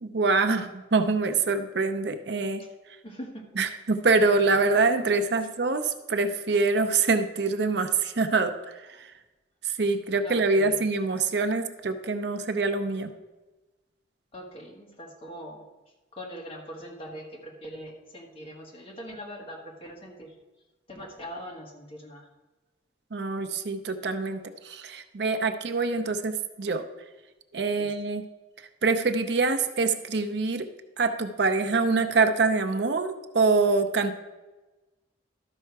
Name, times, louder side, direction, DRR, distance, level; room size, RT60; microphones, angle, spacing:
voice 1, 0.0-2.6 3.6-9.1 9.6-13.1 23.1-26.8 27.5-28.2 28.8-30.7 31.0-34.1, right 3 dB, 60° right, 8 dB, 0.6 m, -25 dB
voice 2, 3.0-3.4 10.2-10.8 14.3-15.6 16.1-20.3 20.9-22.3 27.7-27.9, equal, 30° left, -1 dB, 1.6 m, -42 dB
12.5 x 5.5 x 4.7 m, 1.1 s
head